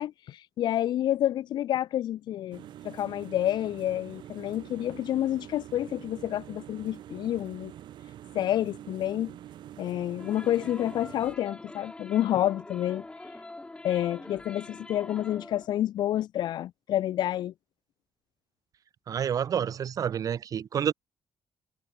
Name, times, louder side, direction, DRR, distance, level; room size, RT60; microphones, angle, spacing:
voice 1, 0.0-7.7 8.3-9.3 9.8-13.0 13.8-17.5, left 12 dB, 65° left, 0.4 m, -29 dB
sound 1, 2.5-11.4, right 12 dB, 75° right, 1.7 m, -46 dB
sound 2, 10.2-15.7, left 2 dB, 15° left, 0.6 m, -45 dB
voice 2, 19.1-20.9, right 8 dB, 50° right, 0.4 m, -29 dB
cardioid pair, 80°, 8 cm